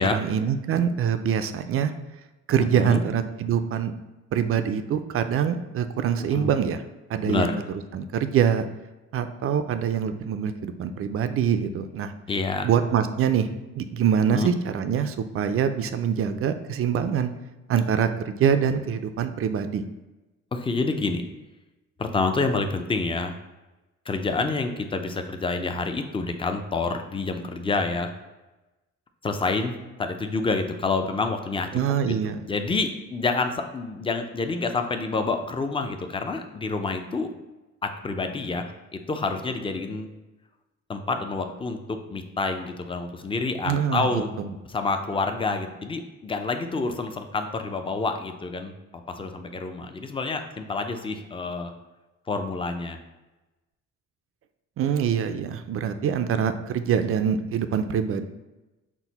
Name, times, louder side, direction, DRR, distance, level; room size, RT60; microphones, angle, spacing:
voice 1, 0.0-1.9 2.5-3.9 4.3-6.8 7.1-7.5 7.9-8.7 9.1-12.1 12.6-13.5 13.8-17.3 17.7-19.9 31.7-32.4 43.6-44.5 54.8-58.2, right 8 dB, 45° right, 9 dB, 0.4 m, -24 dB
voice 2, 2.6-3.0 6.3-6.5 7.2-7.6 12.3-12.7 14.3-14.5 20.5-21.2 22.0-23.4 24.1-28.1 29.2-31.7 32.1-32.2 32.5-37.3 37.8-38.6 38.9-40.1 40.9-44.3 44.7-51.7 52.3-53.0, left 3 dB, 20° left, 6 dB, 0.4 m, -28 dB
6.0 x 2.1 x 4.0 m, 1.1 s
cardioid pair, 90°, 30 cm